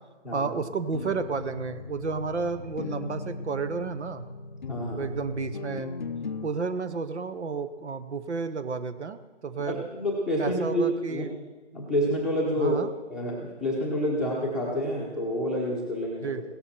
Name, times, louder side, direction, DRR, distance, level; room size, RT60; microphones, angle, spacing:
voice 1, 0.3-4.2 5.0-5.9 6.4-9.8 10.4-11.3 12.6-12.9 16.2-16.4, right 4 dB, 70° right, 12 dB, 1.0 m, -31 dB
sound 1, 0.6-6.5, left 4 dB, 40° left, 0.5 m, -37 dB
voice 2, 4.7-5.1 9.7-11.2 11.7-12.8 13.1-16.3, equal, ahead, -3 dB, 0.9 m, -28 dB
16.5 x 12.5 x 4.4 m, 1.2 s
figure-of-eight pair, 160°, 36 cm